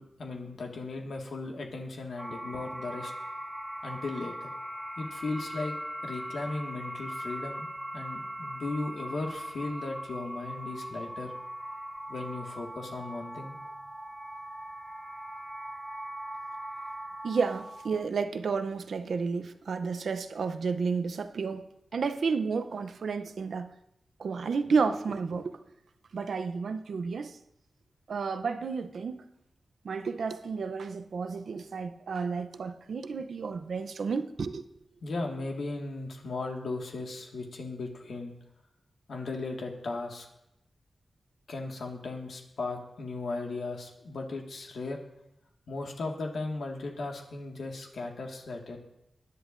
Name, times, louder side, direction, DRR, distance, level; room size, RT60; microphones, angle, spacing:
voice 1, 0.0-3.1 3.8-4.5 5.0-5.7 6.0-7.7 7.9-11.3 12.1-13.6 35.0-38.3 39.1-40.3 41.5-45.0 45.7-48.8, left 3 dB, 80° left, 1.8 m, -36 dB
sound 1, 2.2-18.1, right 1 dB, 5° right, 0.5 m, -40 dB
voice 2, 17.2-23.7 24.2-25.6 26.1-27.4 28.1-29.2 29.8-34.7, right 5 dB, 75° right, 0.6 m, -31 dB
21.0 x 10.0 x 2.6 m
wide cardioid pair, 135°, 0 cm